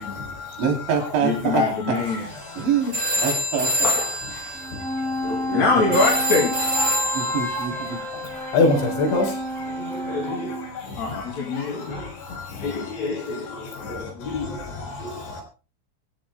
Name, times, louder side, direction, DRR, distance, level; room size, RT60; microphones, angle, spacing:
voice 1, 0.0-0.6 2.1-2.2 4.9-5.0 6.8-7.4 8.3-12.9 13.8-14.3 14.9-15.4, left 3 dB, 75° left, 6.5 m, -28 dB
voice 2, 0.6-1.6 2.6-2.9 3.2-3.7 5.2-5.6 7.1-8.0, right 7 dB, 80° right, 5.7 m, -25 dB
voice 3, 1.2-2.5 3.2-4.6 5.3-6.6 9.7-10.6 11.0-12.2 12.6-15.4, left 3 dB, 45° left, 3.3 m, -26 dB
sound 1, 2.3-2.5 2.9-9.6, equal, 30° right, 0.7 m, -28 dB
sound 2, 4.5-10.7, equal, ahead, 2.0 m, -30 dB
24.5 x 14.5 x 2.2 m
omnidirectional pair, 5.1 m